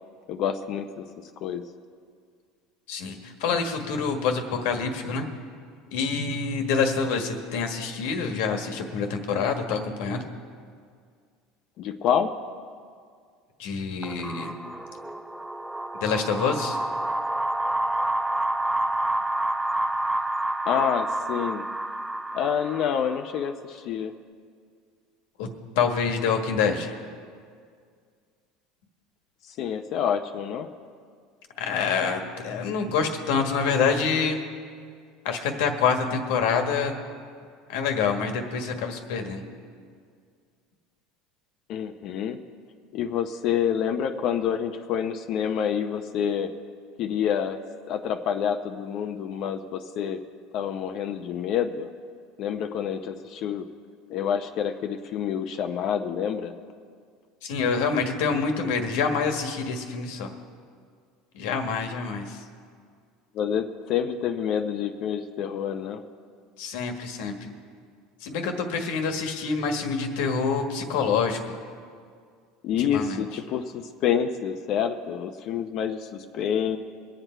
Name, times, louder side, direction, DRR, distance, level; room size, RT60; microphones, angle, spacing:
voice 1, 0.3-1.0 1.4-1.6 11.8-12.3 20.6-21.7 22.3-24.1 29.6-30.7 41.7-42.4 42.9-46.5 47.0-47.6 47.9-50.2 50.5-51.9 52.4-53.7 54.1-56.5 63.3-66.0 72.6-76.8, left 8 dB, 50° left, 6 dB, 0.7 m, -27 dB
voice 2, 2.9-5.3 5.9-10.2 13.6-14.5 16.0-16.8 25.4-25.5 25.7-26.9 31.6-34.4 35.2-36.9 37.7-39.4 57.4-60.3 61.3-62.4 66.6-67.5 68.2-71.6 72.8-73.2, left 5 dB, 75° left, 5 dB, 1.6 m, -26 dB
sound 1, 14.0-23.5, right 1 dB, ahead, 0.5 m, -29 dB
23.0 x 8.1 x 4.5 m, 2.1 s
supercardioid pair, 125°, 0 cm